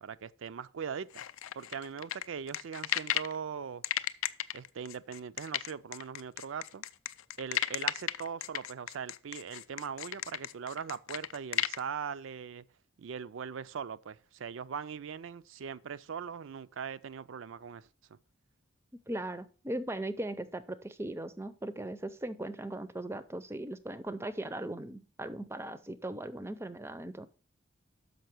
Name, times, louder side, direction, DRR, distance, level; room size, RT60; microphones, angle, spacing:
voice 1, 0.0-1.2 1.5-3.8 4.5-6.8 7.4-12.6 13.0-17.9, right 6 dB, 65° right, 0.4 m, -40 dB
sound 1, 1.1-3.4 3.8-11.8, left 12 dB, 75° left, 0.4 m, -34 dB
voice 2, 19.1-27.3, right 1 dB, 10° right, 0.5 m, -38 dB
6.6 x 5.5 x 6.0 m
head